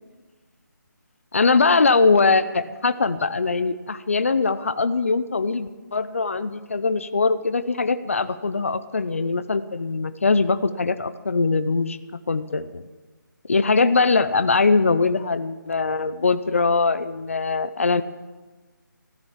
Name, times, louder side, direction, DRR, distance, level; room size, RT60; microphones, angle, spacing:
voice 1, 1.3-12.0 12.3-12.8 13.5-18.0, left 4 dB, 40° left, 13 dB, 0.6 m, -21 dB
14.0 x 13.0 x 7.3 m, 1.2 s
hypercardioid pair, 180°, 11 cm